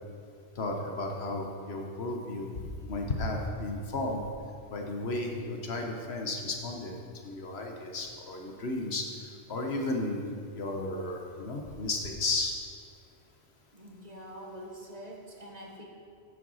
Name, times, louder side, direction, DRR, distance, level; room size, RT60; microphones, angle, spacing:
voice 1, 0.6-4.2 4.7-7.0 7.2-9.0 9.5-12.5, left 2 dB, 80° left, 2 dB, 1.5 m, -33 dB
voice 2, 13.7-15.8, equal, 40° right, -1 dB, 1.5 m, -45 dB
9.9 x 7.8 x 5.6 m, 2.3 s
omnidirectional pair, 1.1 m